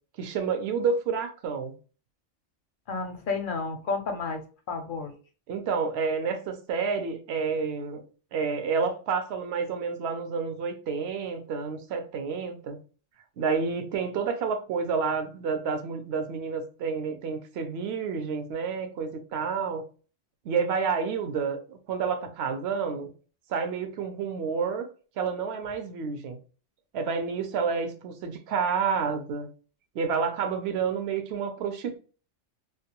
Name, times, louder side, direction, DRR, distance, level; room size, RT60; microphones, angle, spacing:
voice 1, 0.2-1.7 5.5-8.0 8.3-12.8 13.4-19.8 20.4-23.1 23.5-24.9 25.2-26.4 26.9-29.5 29.9-32.0, right 5 dB, 65° right, 0.8 m, -29 dB
voice 2, 2.9-4.4 4.7-5.1, left 4 dB, 60° left, 0.6 m, -31 dB
2.3 x 2.2 x 2.8 m
omnidirectional pair, 1.3 m